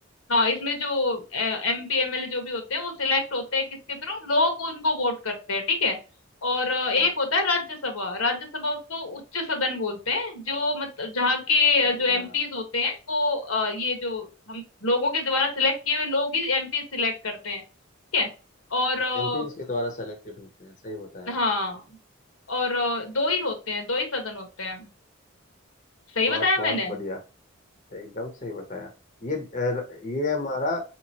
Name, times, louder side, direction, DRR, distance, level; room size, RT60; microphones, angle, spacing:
voice 1, 0.3-6.0 6.4-17.6 18.1-18.3 18.7-19.5 21.3-21.8 22.5-24.9 26.1-27.0, left 3 dB, 80° left, 5 dB, 1.3 m, -26 dB
voice 2, 11.8-12.3 19.1-21.4 26.3-27.2 27.9-28.9 29.2-30.8, left 2 dB, 35° left, 2 dB, 0.8 m, -32 dB
4.8 x 2.9 x 2.8 m, 0.32 s
head